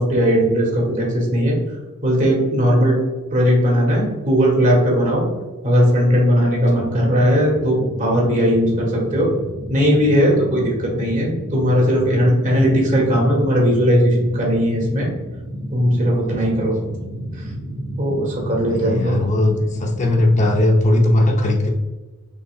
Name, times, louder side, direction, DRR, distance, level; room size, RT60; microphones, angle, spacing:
voice 1, 0.0-1.6 2.0-3.0 3.3-5.2 5.6-9.3 9.7-15.1 15.7-16.8 17.4-17.5 18.0-19.1, equal, 35° right, -2 dB, 1.4 m, -18 dB
sound 1, 6.8-20.6, equal, 65° right, 1.2 m, -31 dB
voice 2, 18.7-21.7, left 1 dB, 35° left, 2 dB, 0.5 m, -18 dB
5.4 x 3.7 x 2.3 m, 1.2 s
head